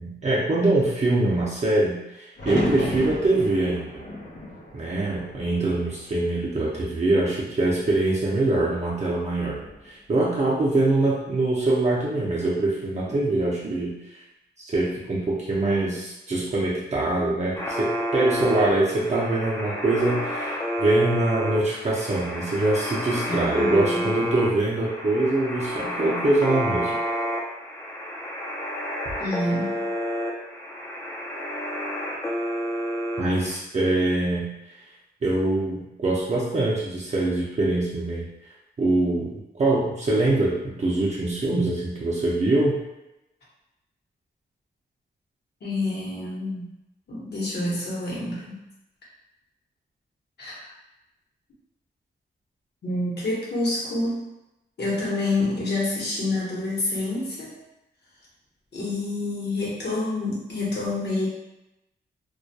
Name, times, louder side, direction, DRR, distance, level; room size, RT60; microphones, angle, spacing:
voice 1, 0.0-4.0 4.7-9.6 9.8-14.2 14.6-27.0 33.2-34.5 35.2-38.3 38.8-42.8, right 2 dB, 40° right, -5 dB, 0.5 m, -24 dB
sound 1, 2.4-6.4 6.8-7.5 9.4-9.9, left 1 dB, 90° left, 0.7 m, -34 dB
sound 2, 17.6-33.6, equal, 15° left, 0.4 m, -30 dB
voice 2, 23.3-24.1 29.2-29.8 45.6-46.7 47.1-48.6 50.4-50.7 52.8-54.3 54.8-57.5 58.7-61.3, left 2 dB, 65° left, -6 dB, 1.0 m, -28 dB
2.3 x 2.1 x 2.7 m, 0.91 s
wide cardioid pair, 95°, 18 cm